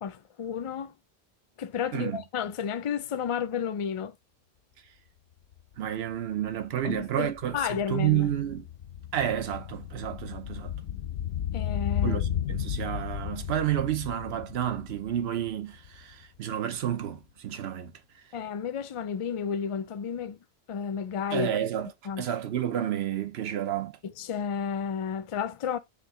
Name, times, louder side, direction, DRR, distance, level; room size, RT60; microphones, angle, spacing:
voice 1, 0.0-0.9 1.6-4.1 6.8-8.3 11.5-12.2 18.3-20.4 20.7-21.5 22.1-22.2 24.2-25.8, left 7 dB, 50° left, 0.4 m, -32 dB
sound 1, 5.5-5.6 5.9-16.2 16.5-16.6, left 10 dB, 80° left, 0.8 m, -34 dB
voice 2, 5.8-8.6 9.1-10.7 12.0-17.9 21.3-21.9 22.2-24.0, right 11 dB, 80° right, 0.9 m, -30 dB
4.9 x 2.6 x 3.8 m
omnidirectional pair, 1.1 m